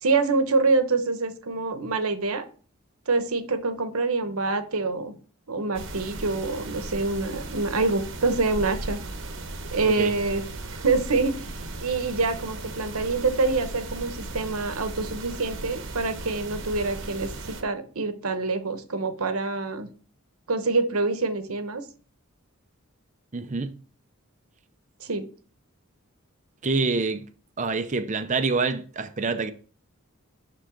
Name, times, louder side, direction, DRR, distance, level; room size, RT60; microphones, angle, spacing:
voice 1, 0.0-2.5 3.1-5.1 5.5-9.0 9.7-10.4 10.7-11.5 11.8-19.9 20.5-21.8 25.0-25.3, right 3 dB, 80° right, 1.0 m, -26 dB
sound 1, 5.7-17.6, right 2 dB, 55° right, 1.0 m, -37 dB
voice 2, 23.3-23.8 26.6-27.3 27.6-29.5, right 4 dB, 35° right, 0.6 m, -26 dB
11.0 x 3.7 x 3.8 m
head